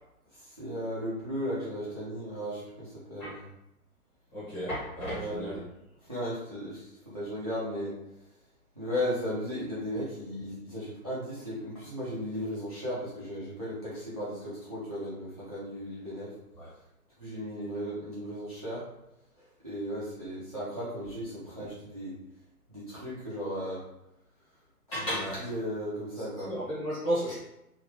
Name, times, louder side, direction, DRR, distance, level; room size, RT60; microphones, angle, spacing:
voice 1, 0.6-3.4 5.0-5.5 6.1-7.9 8.8-16.3 17.2-18.8 19.6-22.1 22.7-23.8 24.9-25.0 25.4-26.5, equal, 30° right, -9 dB, 0.4 m, -35 dB
voice 2, 4.3-5.6 16.6-16.7 24.9-25.4 26.2-27.4, equal, 10° left, -13 dB, 0.7 m, -33 dB
2.8 x 2.0 x 3.0 m, 0.86 s
figure-of-eight pair, 140°, 46 cm